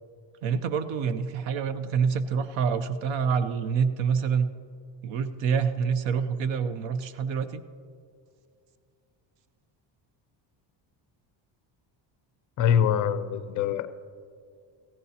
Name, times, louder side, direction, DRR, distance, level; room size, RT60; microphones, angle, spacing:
voice 1, 0.4-4.5 5.0-7.6, right 6 dB, 70° right, 12 dB, 0.7 m, -27 dB
voice 2, 12.6-13.9, left 9 dB, 45° left, 12 dB, 0.4 m, -24 dB
17.0 x 15.0 x 2.8 m, 2.3 s
cardioid pair, 175°, 47 cm